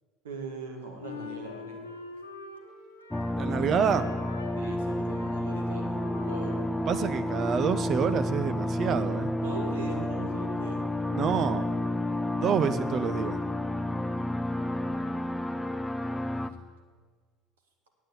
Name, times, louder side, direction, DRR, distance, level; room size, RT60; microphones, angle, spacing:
voice 1, 0.2-1.8 3.4-4.0 4.6-6.6 9.4-10.8, right 4 dB, 80° right, 2 dB, 1.9 m, -40 dB
Wind instrument woodwind instrument, 1.0-3.4 3.7-7.8, left 5 dB, 90° left, 1.0 m, -44 dB
sound 1, 3.1-16.5, left 1 dB, 10° left, 0.7 m, -30 dB
voice 2, 3.4-4.0 6.9-9.3 11.1-11.6 12.3-13.4, right 7 dB, 45° right, 11 dB, 0.9 m, -27 dB
9.2 x 8.4 x 9.4 m, 1.6 s
figure-of-eight pair, 65°, 0 cm